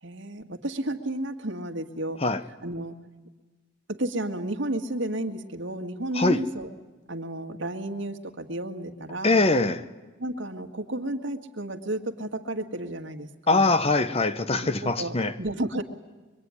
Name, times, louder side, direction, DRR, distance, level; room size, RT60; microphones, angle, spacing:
voice 1, 0.0-2.2 2.6-3.0 3.9-6.7 7.1-9.5 10.2-13.7 14.5-15.8, right 1 dB, 60° right, 1.8 m, -32 dB
voice 2, 9.2-9.8 13.5-15.3, left 3 dB, 30° left, 0.9 m, -23 dB
23.5 x 23.5 x 9.7 m
head